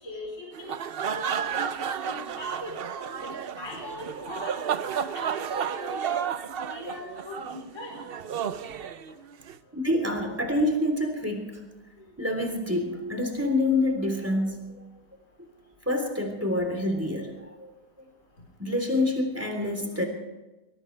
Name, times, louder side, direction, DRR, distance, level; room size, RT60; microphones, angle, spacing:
voice 1, 0.0-1.7 2.0-2.8 3.2-3.3 3.6-4.6 4.9-8.0, left 2 dB, 45° left, -1 dB, 4.4 m, -40 dB
sound 1, 0.5-9.6, right 8 dB, 60° right, 0.6 m, -32 dB
voice 2, 9.7-11.7 12.2-14.8 15.4-15.5 15.9-17.7 18.6-20.0, left 1 dB, 10° right, 4 dB, 3.4 m, -27 dB
21.5 x 20.0 x 3.3 m, 1.1 s
omnidirectional pair, 1.8 m